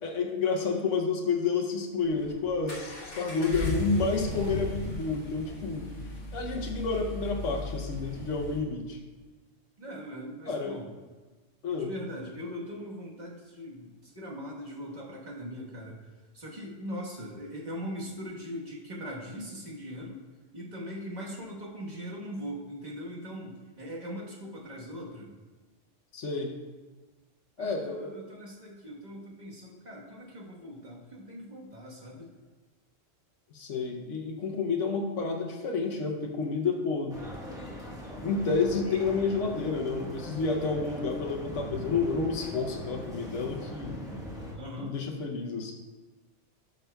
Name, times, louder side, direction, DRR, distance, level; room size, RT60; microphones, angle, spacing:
voice 1, 0.0-5.9 6.3-9.0 10.5-10.7 11.6-11.9 26.1-26.5 27.6-28.2 33.5-37.2 38.2-44.0 44.8-45.7, left 4 dB, 90° left, 1 dB, 1.1 m, -30 dB
Accelerating revving vroom, 2.0-8.6, left 1 dB, 75° left, 1.8 m, -36 dB
voice 2, 9.8-10.9 11.8-16.0 16.3-20.2 20.5-25.3 27.6-32.3 38.9-39.2 44.5-44.9, equal, 40° right, -3 dB, 1.4 m, -40 dB
sound 1, 37.1-44.5, equal, 5° right, 1.1 m, -41 dB
11.5 x 5.8 x 2.2 m, 1.3 s
omnidirectional pair, 1.2 m